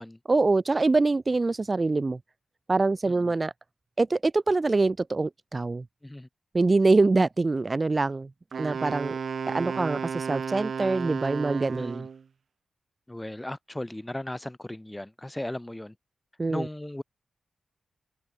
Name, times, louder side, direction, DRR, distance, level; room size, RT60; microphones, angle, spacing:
voice 1, 0.3-2.2 2.7-3.5 4.0-5.8 6.5-8.3 8.6-9.2 9.5-12.1 16.4-16.7, right 3 dB, 40° right, 4.1 m, -24 dB
Wind instrument woodwind instrument, 8.5-12.2, right 6 dB, 65° right, 1.3 m, -33 dB
voice 2, 11.7-12.1 13.1-15.9 16.5-17.0, left 1 dB, 15° left, 4.5 m, -36 dB
open air
supercardioid pair, 40°, 0 cm